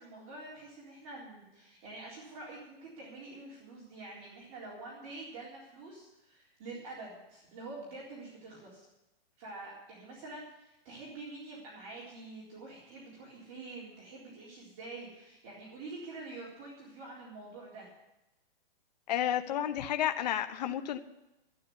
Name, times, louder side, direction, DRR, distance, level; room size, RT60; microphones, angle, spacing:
voice 1, 0.0-8.9 9.4-17.9, right 2 dB, 25° right, -5 dB, 3.9 m, -46 dB
voice 2, 19.1-21.0, left 11 dB, 45° left, 8 dB, 1.1 m, -31 dB
12.5 x 9.7 x 9.4 m, 0.92 s
hypercardioid pair, 170°, 29 cm